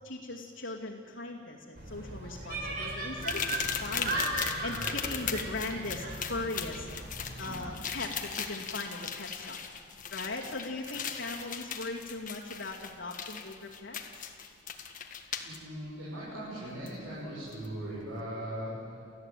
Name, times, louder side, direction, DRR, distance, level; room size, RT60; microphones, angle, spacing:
voice 1, 0.0-6.9 7.4-9.6 10.1-14.0, left 2 dB, 65° left, -4 dB, 2.3 m, -39 dB
sound 1, 1.8-7.7, right 1 dB, 45° right, 4.6 m, -37 dB
sound 2, 3.2-15.6 16.9-17.0 17.5-17.7, left 7 dB, 40° left, 1.6 m, -38 dB
voice 2, 15.4-18.7, right 1 dB, 75° right, -8 dB, 7.4 m, -39 dB
29.0 x 15.0 x 9.1 m, 2.4 s
head